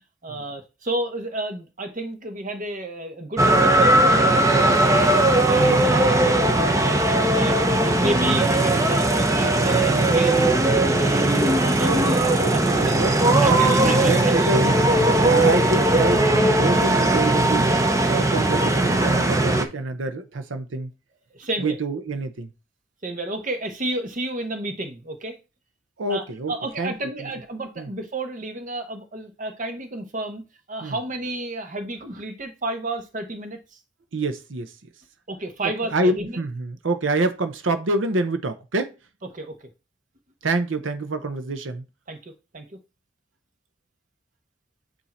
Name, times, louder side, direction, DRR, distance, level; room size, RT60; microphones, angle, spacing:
voice 1, 0.2-5.1 5.5-6.2 6.6-7.0 7.3-10.5 10.9-13.0 13.4-14.6 18.1-18.3 21.3-21.8 23.0-25.4 26.1-30.4 30.7-33.8 35.3-36.4 39.3-39.7 42.1-42.8, right 2 dB, 40° right, 1.1 m, -31 dB
sound 1, 3.4-19.6, right 1 dB, 15° right, 0.6 m, -19 dB
voice 2, 5.6-6.1 11.9-12.0 12.4-12.5 12.8-14.8 15.2-16.3 16.6-17.7 18.1-20.9 21.6-22.5 26.0-26.9 27.8-27.9 30.8-31.0 34.1-34.7 35.9-38.9 40.4-41.8, right 2 dB, 75° right, 0.7 m, -27 dB
8.3 x 2.8 x 4.3 m
head